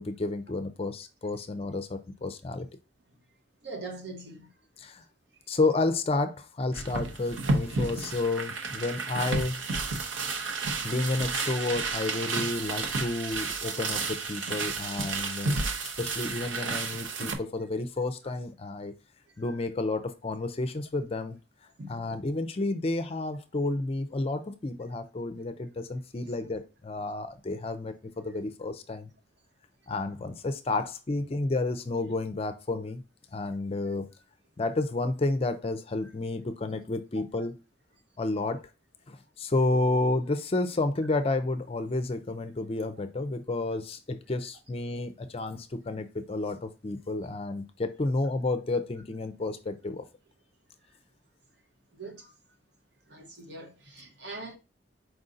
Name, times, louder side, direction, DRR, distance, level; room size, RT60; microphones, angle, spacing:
voice 1, 0.0-2.7 4.8-5.0 5.5-9.6 10.8-18.9 19.4-21.4 21.9-29.1 29.9-33.0 33.3-34.1 34.6-37.5 38.2-38.6 39.1-50.0, left 2 dB, 30° left, 0.4 m, -31 dB
voice 2, 3.6-4.5 19.4-19.5 21.8-22.0 51.9-52.3 53.1-54.6, right 2 dB, 60° right, 0.9 m, -42 dB
sound 1, 6.7-17.4, right 3 dB, 90° right, 0.7 m, -31 dB
4.7 x 2.6 x 3.8 m
head